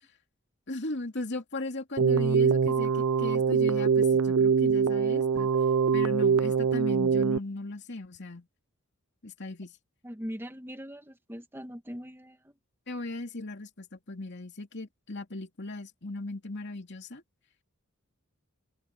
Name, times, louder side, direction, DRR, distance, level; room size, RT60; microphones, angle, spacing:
voice 1, 0.7-5.5 5.9-8.5 9.2-9.7 12.9-17.2, left 2 dB, 55° left, 2.8 m, -37 dB
Keyboard (musical), 2.0-7.4, right 6 dB, 85° right, 0.6 m, -24 dB
voice 2, 10.0-12.5, equal, 10° right, 1.9 m, -41 dB
head